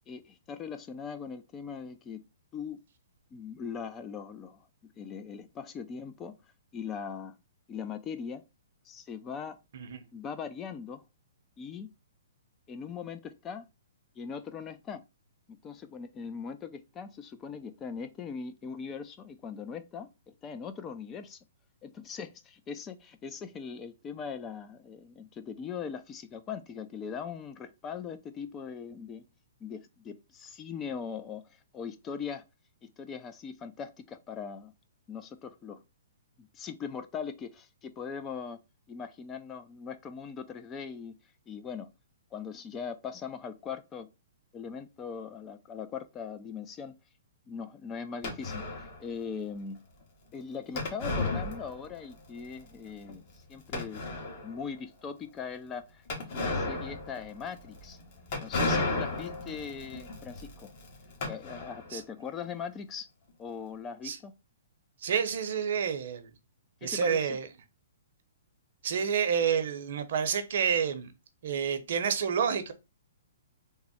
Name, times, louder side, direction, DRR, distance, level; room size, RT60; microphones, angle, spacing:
voice 1, 0.1-2.2 2.5-2.8 3.3-4.7 5.0-6.3 6.7-7.4 7.7-8.4 8.8-9.6 10.1-11.0 11.6-11.9 12.7-13.7 14.2-15.0 15.5-20.1 20.4-21.4 21.8-29.2 29.6-32.4 32.8-34.7 35.1-35.8 36.4-38.6 38.9-41.1 41.5-41.9 42.3-44.1 44.5-46.9 47.5-49.8 50.3-54.0 54.4-58.0 58.4-60.7 61.3-63.1 63.4-64.3 66.8-67.4, left 6 dB, 20° left, 0.4 m, -40 dB
sound 1, 48.2-49.0 50.8-52.1 52.4-52.5 53.1-53.2 53.7-54.6 56.1-62.0, left 2 dB, 45° left, 1.2 m, -34 dB
voice 2, 65.0-66.3 66.8-67.5 68.8-71.1 71.4-72.7, right 7 dB, 60° right, 0.7 m, -29 dB
3.5 x 2.0 x 4.1 m
hypercardioid pair, 140°, 0 cm